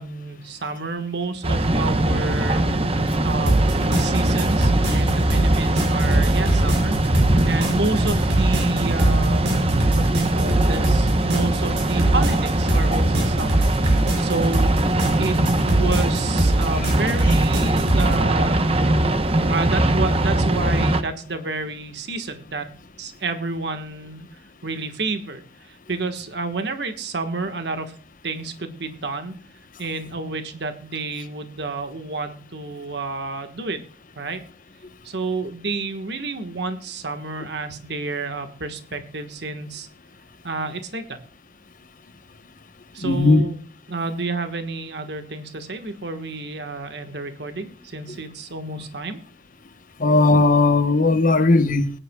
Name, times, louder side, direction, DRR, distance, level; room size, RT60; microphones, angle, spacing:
voice 1, 0.0-2.6 3.2-7.0 7.5-9.5 9.9-13.7 14.2-14.7 15.2-18.6 19.5-22.7 23.0-24.3 24.6-27.9 28.2-29.3 29.8-33.8 34.2-34.4 35.0-39.9 40.4-41.2 42.9-43.6 43.9-49.2, right 3 dB, 70° right, 1.4 m, -30 dB
sound 1, 1.4-21.0, right 1 dB, 35° right, 0.8 m, -21 dB
sound 2, 3.5-18.2, right 1 dB, 85° right, 5.4 m, -23 dB
voice 2, 43.0-43.4 50.0-51.9, left 3 dB, 50° left, 1.0 m, -17 dB
21.0 x 10.0 x 2.3 m
head